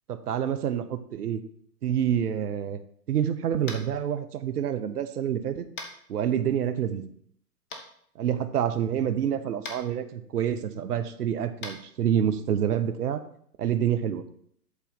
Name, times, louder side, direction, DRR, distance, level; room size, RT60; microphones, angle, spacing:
voice 1, 0.1-1.4 1.8-2.8 3.1-5.7 6.1-7.1 8.2-13.2 13.6-14.2, right 9 dB, 75° right, 10 dB, 0.9 m, -27 dB
Tap, 3.6-3.9 5.8-5.9 7.7-7.8 9.6-9.8 11.6-11.7, left 3 dB, 25° left, 1.2 m, -37 dB
8.1 x 4.1 x 5.6 m, 0.64 s
figure-of-eight pair, 115°, 47 cm